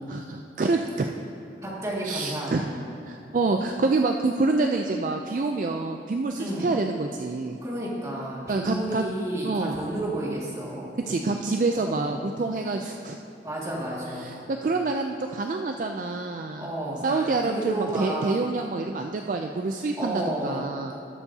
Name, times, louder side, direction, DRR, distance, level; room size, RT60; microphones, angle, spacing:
voice 1, 0.1-1.1 2.0-2.6 3.1-7.6 8.5-9.0 9.4-9.8 11.1-13.2 14.2-16.7 17.0-20.9, right 3 dB, 45° right, 3 dB, 0.3 m, -27 dB
voice 2, 1.6-2.7 6.4-6.7 7.6-11.0 11.8-12.1 13.4-14.3 16.6-18.3 20.0-20.6, right 1 dB, 20° right, -6 dB, 2.0 m, -31 dB
19.0 x 7.0 x 2.8 m, 2.6 s
head